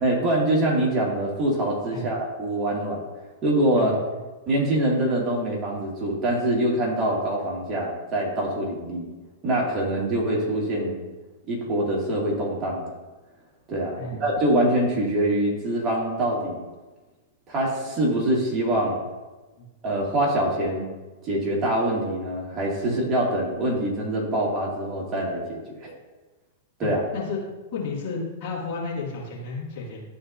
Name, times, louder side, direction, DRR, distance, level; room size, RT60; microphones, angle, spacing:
voice 1, 0.0-3.0 3.4-3.9 4.5-9.1 9.4-11.0 11.5-12.9 13.7-16.6 17.5-19.0 19.8-20.9 21.2-25.9 26.8-27.0, right 1 dB, 30° right, -3 dB, 2.2 m, -24 dB
voice 2, 26.8-27.4 27.7-30.0, left 4 dB, 50° left, -4 dB, 2.2 m, -32 dB
12.0 x 4.2 x 2.6 m, 1.2 s
figure-of-eight pair, 100°, 0 cm